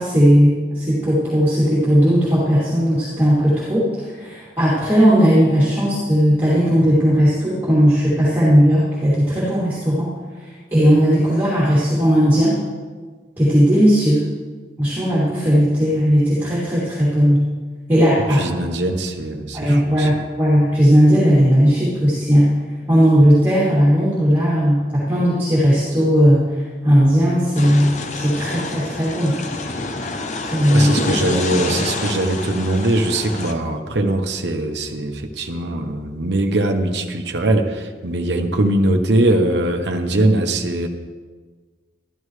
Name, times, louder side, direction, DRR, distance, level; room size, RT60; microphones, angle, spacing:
voice 1, 0.0-10.1 10.7-12.6 13.4-14.2 14.8-17.4 17.9-18.4 19.5-22.6 22.9-29.4 30.4-30.9, equal, 10° right, -10 dB, 2.7 m, -16 dB
voice 2, 18.3-20.1 30.7-40.9, right 1 dB, 80° right, 4 dB, 1.0 m, -21 dB
sound 1, 27.6-33.5, left 2 dB, 40° left, 0.7 m, -27 dB
13.0 x 13.0 x 3.3 m, 1.4 s
head